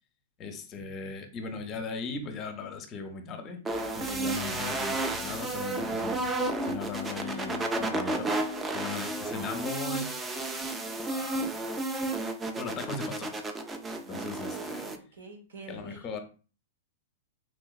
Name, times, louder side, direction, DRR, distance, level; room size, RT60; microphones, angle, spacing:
voice 1, 0.4-8.3 8.7-10.2 11.1-11.6 12.6-13.3 13.9-14.9 15.7-16.2, left 4 dB, 30° left, 0.6 m, -38 dB
sound 1, 3.6-15.0, right 2 dB, 15° right, 0.4 m, -32 dB
sound 2, 3.7-11.3, left 7 dB, 5° left, 0.9 m, -43 dB
sound 3, 3.8-11.0, right 3 dB, 55° right, 1.0 m, -53 dB
voice 2, 14.0-16.2, right 3 dB, 85° right, 1.0 m, -47 dB
3.3 x 2.9 x 2.3 m
hypercardioid pair, 135°, 0 cm